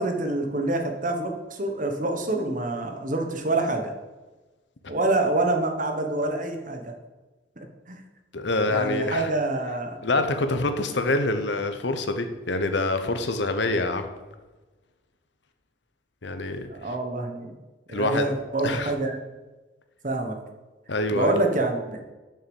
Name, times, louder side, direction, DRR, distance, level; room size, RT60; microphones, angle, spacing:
voice 1, 0.0-3.9 4.9-6.9 7.6-8.0 8.6-10.0 16.7-17.5 17.9-19.2 20.0-20.4 21.1-22.0, right 2 dB, 40° right, 4 dB, 1.2 m, -26 dB
voice 2, 8.3-9.3 10.0-14.1 16.2-16.7 17.9-18.3 18.6-18.9 20.9-21.3, left 2 dB, 65° left, 8 dB, 1.0 m, -26 dB
6.9 x 6.4 x 7.1 m, 1.2 s
head